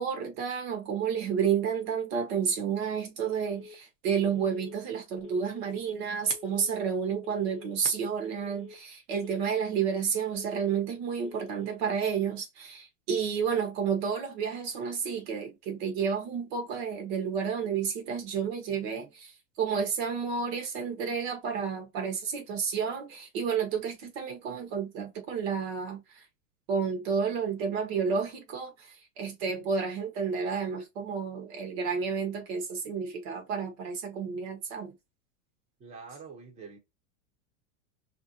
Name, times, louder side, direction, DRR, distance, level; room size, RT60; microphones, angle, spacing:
voice 1, 0.0-19.3 19.6-26.2 26.7-34.9, right 6 dB, 45° right, 1.1 m, -31 dB
Telephone, 3.2-3.8 4.2-4.8 5.2-5.8 6.2-6.8 7.2-7.8 8.2-8.8 9.2-9.8 10.2-10.8 11.2-11.8, left 6 dB, 15° left, 0.9 m, -48 dB
voice 2, 35.8-36.8, right 5 dB, 15° right, 1.0 m, -45 dB
5.6 x 2.7 x 2.8 m
supercardioid pair, 160°, 41 cm